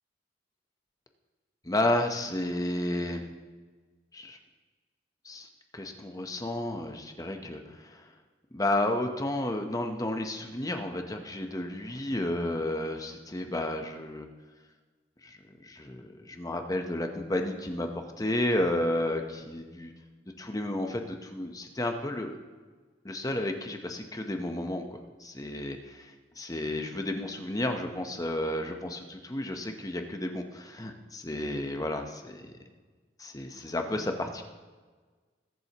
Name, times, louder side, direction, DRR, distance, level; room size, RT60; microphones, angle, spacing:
voice 1, 1.6-3.3 4.1-4.4 5.2-5.5 5.7-8.1 8.5-14.3 15.2-17.9 18.2-19.9 20.4-22.4 23.0-32.5 33.2-34.4, left 1 dB, 20° left, 5 dB, 1.0 m, -32 dB
21.0 x 7.7 x 3.0 m, 1.4 s
head